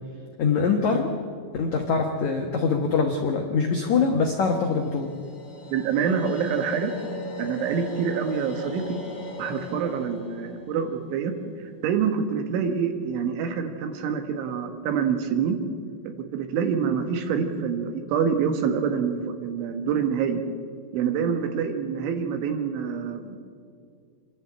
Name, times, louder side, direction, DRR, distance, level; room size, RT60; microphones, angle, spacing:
voice 1, 0.4-1.1 1.5-5.1, left 5 dB, 85° left, 2 dB, 1.6 m, -23 dB
sound 1, 4.7-11.9, left 1 dB, 35° left, 2.4 m, -38 dB
voice 2, 5.7-6.9 7.4-9.0 9.4-11.3 11.8-15.6 16.3-20.4 20.9-23.4, right 7 dB, 80° right, 7 dB, 3.9 m, -26 dB
27.0 x 11.5 x 8.7 m, 2.2 s
omnidirectional pair, 5.5 m